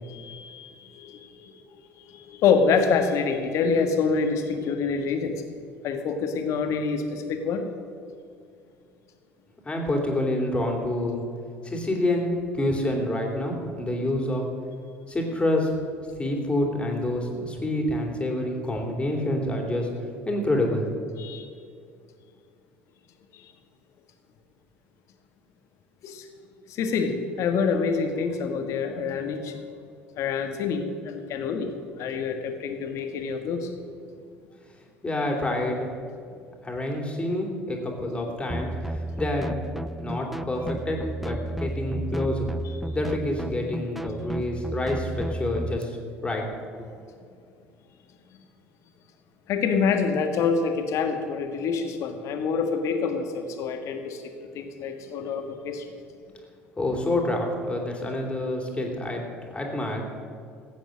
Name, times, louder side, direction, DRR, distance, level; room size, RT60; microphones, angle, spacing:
voice 1, 0.0-1.6 2.0-5.3 5.8-7.6 21.2-21.5 23.3-23.5 26.0-26.3 26.7-29.6 30.2-31.7 32.0-33.7 49.5-54.2 54.5-55.8, left 5 dB, 50° left, 6 dB, 1.6 m, -26 dB
voice 2, 9.6-11.2 11.6-14.5 15.1-15.7 16.2-19.9 20.2-20.9 35.0-35.9 36.6-39.6 40.0-42.5 42.9-46.0 46.2-46.4 56.8-60.2, left 1 dB, 15° left, 1 dB, 3.2 m, -27 dB
sound 1, 38.5-45.8, right 1 dB, ahead, 0.4 m, -33 dB
16.0 x 9.0 x 6.4 m, 2.3 s
figure-of-eight pair, 60°, 7 cm